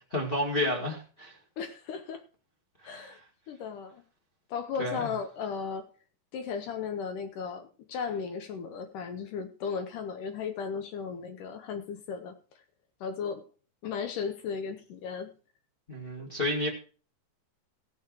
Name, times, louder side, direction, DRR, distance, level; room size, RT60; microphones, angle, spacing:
voice 1, 0.1-1.3 2.8-3.2 4.8-5.1 15.9-16.7, left 1 dB, 35° left, -1 dB, 0.8 m, -31 dB
voice 2, 1.6-2.2 2.8-3.2 3.5-4.0 4.5-5.9 6.3-12.4 13.0-13.4 13.8-15.3, left 6 dB, 75° left, 8 dB, 1.9 m, -35 dB
17.0 x 6.7 x 4.6 m, 0.38 s
omnidirectional pair, 4.8 m